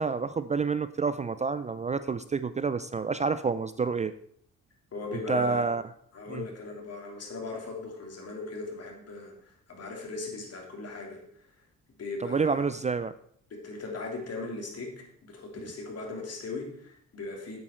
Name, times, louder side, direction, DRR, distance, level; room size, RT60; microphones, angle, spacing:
voice 1, 0.0-4.1 5.3-5.8 6.3-6.4 12.2-13.1, right 5 dB, 25° right, 13 dB, 0.4 m, -28 dB
voice 2, 4.9-5.6 6.1-11.5 12.0-12.7 13.5-17.6, left 3 dB, 55° left, 1 dB, 3.2 m, -38 dB
8.9 x 8.1 x 4.5 m, 0.66 s
cardioid pair, 90°, 30 cm